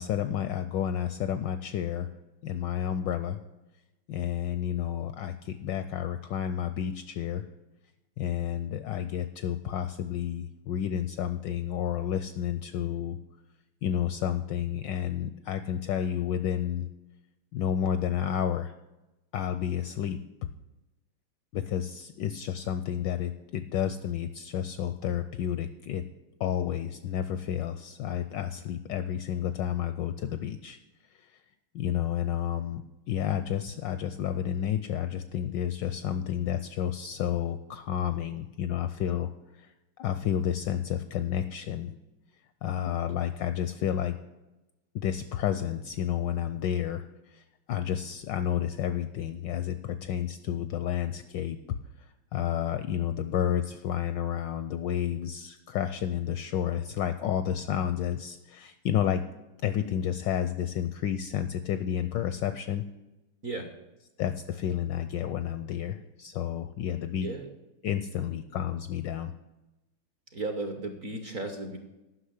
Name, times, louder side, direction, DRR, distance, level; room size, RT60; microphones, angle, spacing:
voice 1, 0.0-2.1 2.4-3.4 4.1-7.4 8.2-13.2 13.8-16.9 17.5-18.7 19.3-20.2 21.5-26.0 26.4-30.8 31.1-31.4 31.7-32.8 33.1-39.7 40.0-42.0 42.6-44.2 44.9-51.6 52.0-59.2 59.6-62.8 64.2-67.3 67.8-69.3, left 10 dB, 75° left, 11 dB, 1.0 m, -31 dB
voice 2, 67.2-67.5 70.3-71.8, right 2 dB, 55° right, 6 dB, 1.0 m, -35 dB
10.0 x 6.1 x 8.0 m, 1.0 s
omnidirectional pair, 2.4 m